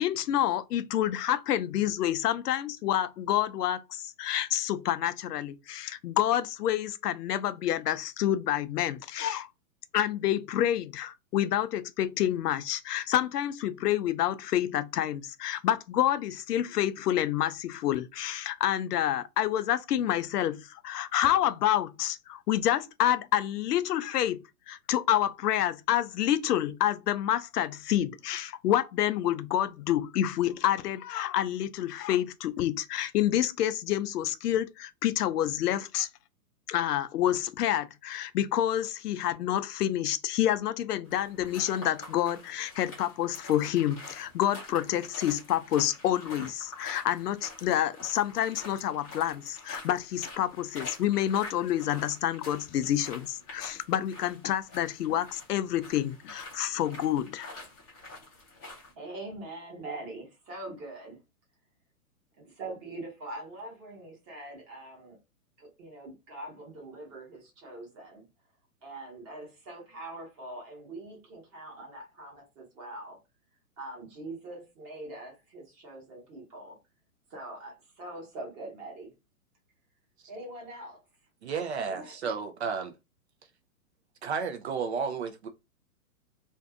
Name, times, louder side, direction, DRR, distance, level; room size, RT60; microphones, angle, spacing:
voice 1, 0.0-9.5 9.9-36.1 36.7-57.5, left 12 dB, 85° left, 0.5 m, -28 dB
sound 1, 41.1-58.9, left 2 dB, 10° left, 0.5 m, -47 dB
voice 2, 59.0-61.2 62.4-65.2 65.6-68.2 68.8-73.2 73.8-76.8 77.3-79.1 80.3-81.0 81.9-82.2, right 2 dB, 20° right, 1.0 m, -43 dB
voice 3, 81.4-82.9 84.2-85.5, right 5 dB, 50° right, 0.5 m, -32 dB
2.6 x 2.3 x 3.5 m
hypercardioid pair, 155°, 45 cm